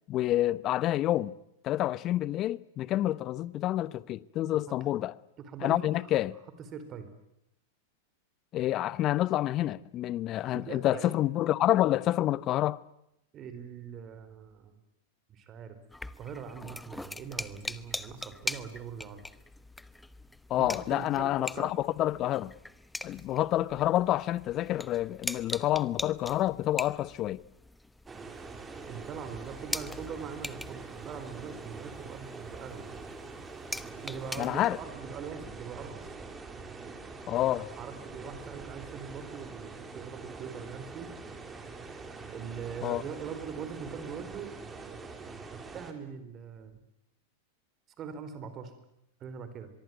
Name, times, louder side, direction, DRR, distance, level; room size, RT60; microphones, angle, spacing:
voice 1, 0.1-1.3 1.6-5.2 5.6-6.3 8.5-12.8 20.5-22.5 23.0-27.4 34.4-34.8 37.3-37.7 42.8-43.0, left 14 dB, 40° left, 0.9 m, -28 dB
voice 2, 5.4-6.2 6.6-7.1 10.5-11.2 13.3-14.8 15.3-15.7 16.2-19.2 20.6-21.7 28.9-32.9 34.0-36.2 37.5-41.1 42.3-44.5 44.8-46.8 48.0-48.7 49.2-49.7, right 7 dB, 35° right, 4.5 m, -42 dB
sound 1, 15.9-34.8, left 1 dB, 5° left, 1.0 m, -42 dB
sound 2, 28.1-45.9, right 4 dB, 15° right, 4.0 m, -44 dB
23.5 x 23.5 x 9.5 m
hypercardioid pair, 100°, 0 cm